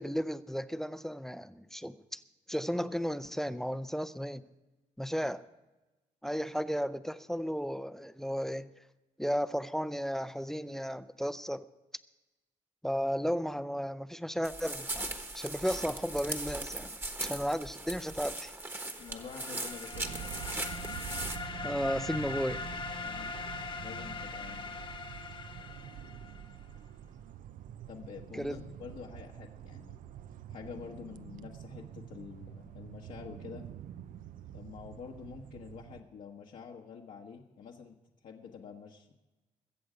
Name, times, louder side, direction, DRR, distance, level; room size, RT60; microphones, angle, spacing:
voice 1, 0.0-2.2 2.5-4.4 5.0-5.4 6.2-8.7 9.2-11.7 12.8-16.9 17.2-18.5 21.6-22.6 28.3-28.6, equal, 5° left, 0.4 m, -34 dB
sound 1, 14.4-21.4, right 2 dB, 15° right, 1.2 m, -39 dB
sound 2, 18.8-26.6, left 4 dB, 40° left, 0.8 m, -42 dB
voice 2, 19.0-20.2 23.0-23.3 23.7-24.7 27.9-30.0 30.5-33.6 34.5-38.0 38.2-39.2, left 6 dB, 70° left, 1.2 m, -47 dB
sound 3, 19.9-36.0, right 10 dB, 90° right, 0.5 m, -46 dB
22.0 x 7.8 x 5.0 m
cardioid pair, 140°, 14 cm